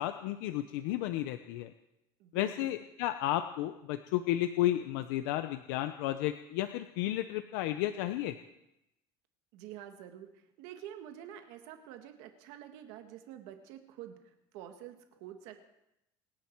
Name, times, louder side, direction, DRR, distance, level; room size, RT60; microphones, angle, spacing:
voice 1, 0.0-1.7 2.3-8.4, left 13 dB, 85° left, 9 dB, 0.8 m, -32 dB
voice 2, 2.2-2.7 9.5-15.6, right 11 dB, 65° right, 6 dB, 1.7 m, -48 dB
26.5 x 11.0 x 4.6 m, 0.86 s
cardioid pair, 175°, 12 cm